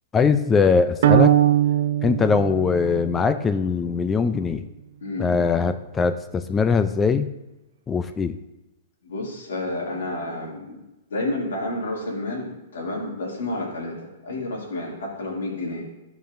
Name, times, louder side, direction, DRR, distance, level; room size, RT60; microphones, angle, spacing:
voice 1, 0.1-1.3 2.0-4.6 5.2-7.3 7.9-8.4, left 5 dB, 15° left, 10 dB, 0.4 m, -21 dB
sound 1, 1.0-3.3, right 11 dB, 65° right, 0.4 m, -20 dB
voice 2, 5.0-5.4 9.0-10.8 11.1-15.9, left 2 dB, 90° left, -4 dB, 2.5 m, -30 dB
12.5 x 5.0 x 2.6 m, 1.0 s
hypercardioid pair, 145°, 0 cm